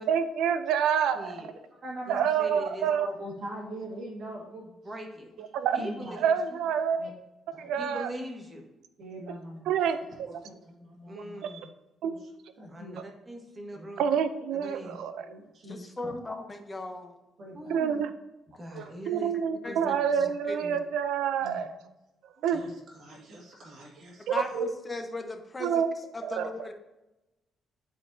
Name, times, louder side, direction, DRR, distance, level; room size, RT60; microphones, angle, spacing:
voice 1, 0.1-1.4 2.1-3.1 5.4-5.8 6.2-7.0 7.6-8.1 9.7-10.3 11.2-11.6 12.0-12.1 14.0-15.3 17.7-18.1 18.7-21.7 22.4-22.6 24.3-24.7 25.6-25.9 26.2-26.5, right 8 dB, 85° right, 11 dB, 0.5 m, -27 dB
voice 2, 1.1-1.5 2.1-2.9 4.8-5.3 5.7-6.6 7.8-8.6 11.1-11.7 12.7-14.0 14.5-15.0 16.0-16.3 17.5-18.0 18.5-19.3 19.6-20.0 20.6-20.8, right 1 dB, 25° right, 1 dB, 1.5 m, -41 dB
voice 3, 1.8-2.3 2.8-4.7 5.8-6.2 7.0-7.1 7.5-7.8 9.0-9.7 10.3-11.4 12.0-12.1 12.6-13.0 13.7-13.9 14.8-14.9 15.2-15.9 17.4-17.7 18.8-18.9 21.4-21.6 22.4-24.6, right 1 dB, 60° right, -3 dB, 2.1 m, -42 dB
voice 4, 15.7-17.2 19.6-19.8 20.5-20.7 24.3-25.8 26.1-26.7, left 2 dB, 25° left, 6 dB, 0.9 m, -37 dB
9.8 x 4.4 x 2.7 m, 0.96 s
cardioid pair, 90°, 0 cm